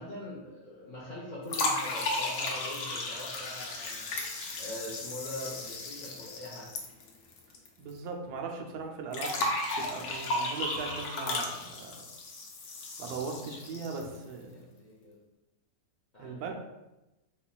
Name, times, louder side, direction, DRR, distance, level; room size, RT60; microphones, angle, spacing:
voice 1, 0.0-4.1 4.6-6.7 13.6-13.9 14.4-15.2 16.1-16.5, left 1 dB, 60° left, -6 dB, 0.4 m, -43 dB
sound 1, 1.5-7.7 7.9-8.0 9.1-14.2, left 2 dB, 90° left, 1.2 m, -34 dB
voice 2, 7.8-9.5 9.7-12.0 13.0-14.5 16.2-16.6, right 4 dB, 90° right, 2 dB, 1.1 m, -39 dB
4.1 x 3.1 x 2.2 m, 1.0 s
omnidirectional pair, 1.6 m